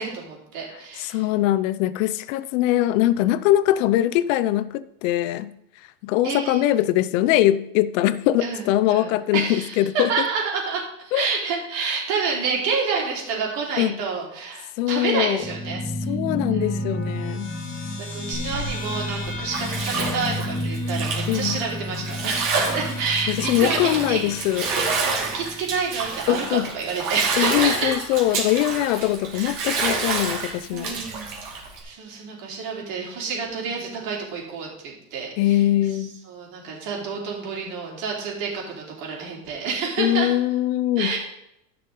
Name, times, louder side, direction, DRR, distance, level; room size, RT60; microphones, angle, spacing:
voice 1, 0.0-1.2 6.2-6.6 8.4-16.1 16.5-17.0 18.0-24.4 25.0-27.9 29.3-29.5 30.7-31.3 31.8-35.6 36.3-40.3 41.0-41.2, right 5 dB, 60° right, -2 dB, 3.5 m, -29 dB
voice 2, 0.7-5.5 6.0-10.3 11.1-11.3 13.8-14.0 14.8-15.4 16.1-17.5 21.3-21.6 23.3-24.7 26.3-26.7 27.4-31.0 35.4-36.2 40.0-41.1, left 13 dB, 55° left, 16 dB, 0.5 m, -22 dB
sound 1, 15.4-26.2, left 1 dB, 15° left, 2.0 m, -31 dB
Bathtub (filling or washing), 18.3-31.8, right 4 dB, 45° right, 2.6 m, -29 dB
14.5 x 5.8 x 3.7 m, 0.82 s
supercardioid pair, 140°, 46 cm